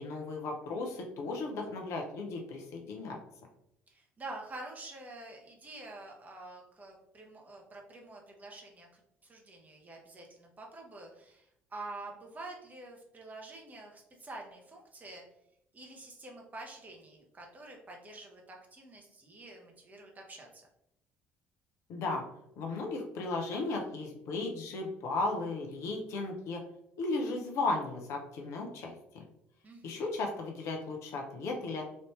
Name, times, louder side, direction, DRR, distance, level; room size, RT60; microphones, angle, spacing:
voice 1, 0.0-3.2 21.9-22.2 22.6-26.6 27.0-29.2 29.8-31.9, left 3 dB, 55° left, 2 dB, 0.6 m, -35 dB
voice 2, 3.9-15.2 15.7-20.7 29.6-30.0, right 2 dB, 25° right, 0 dB, 0.9 m, -47 dB
3.1 x 2.6 x 3.1 m, 0.80 s
figure-of-eight pair, 55°, 6 cm